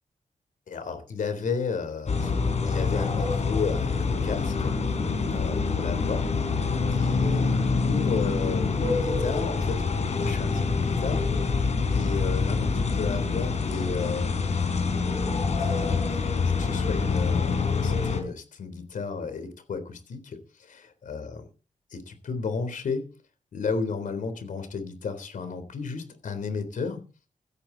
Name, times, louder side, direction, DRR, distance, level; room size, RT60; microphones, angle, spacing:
voice 1, 0.7-2.3 2.6-4.8 5.3-6.3 6.9-7.6 7.8-11.3 11.9-14.4 15.6-21.4 21.9-23.1 23.5-27.0, left 5 dB, 75° left, 10 dB, 3.6 m, -33 dB
sound 1, 2.1-18.2, left 4 dB, 55° left, 4.1 m, -26 dB
16.5 x 13.5 x 4.0 m, 0.36 s
wide cardioid pair, 120°, 14 cm